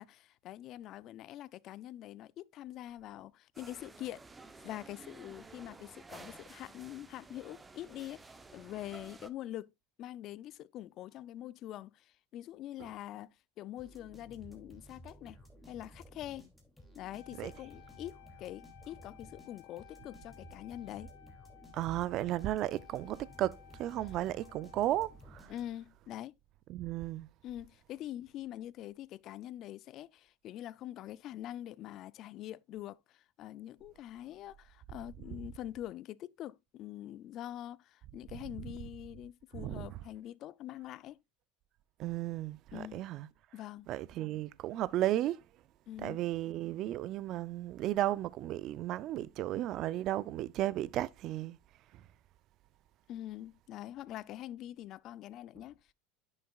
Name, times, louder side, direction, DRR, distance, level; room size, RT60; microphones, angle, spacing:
voice 1, 0.0-4.2 4.6-9.7 10.0-15.4 15.7-16.5 16.9-21.1 24.0-24.2 25.5-26.3 27.4-41.2 42.7-43.0 43.5-43.9 45.9-46.2 53.1-55.9, left 13 dB, 45° left, 0.4 m, -45 dB
sound 1, 3.5-9.3, right 3 dB, 15° right, 0.7 m, -53 dB
sound 2, 13.8-26.0, right 1 dB, 5° left, 2.7 m, -55 dB
Wind instrument woodwind instrument, 17.0-25.3, left 13 dB, 80° left, 1.1 m, -58 dB
voice 2, 21.7-25.5 26.7-27.3 39.6-39.9 42.0-43.3 43.9-45.4 46.0-51.6 51.9-52.0, right 14 dB, 50° right, 0.4 m, -34 dB
10.0 x 6.5 x 2.4 m
supercardioid pair, 120°, 0 cm